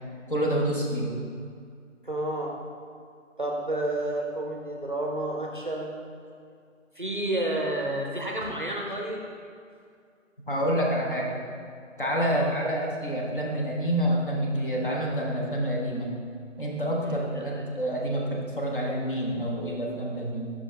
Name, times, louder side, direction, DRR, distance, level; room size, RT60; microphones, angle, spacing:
voice 1, 0.3-1.1 10.5-11.3 12.0-16.1 16.6-20.5, right 1 dB, 40° left, -2 dB, 0.8 m, -28 dB
voice 2, 2.0-2.6 3.4-5.9 6.9-9.2 12.3-12.6 17.0-17.7, right 1 dB, 40° right, -1 dB, 0.5 m, -31 dB
5.4 x 5.4 x 3.3 m, 2.3 s
hypercardioid pair, 175°, 39 cm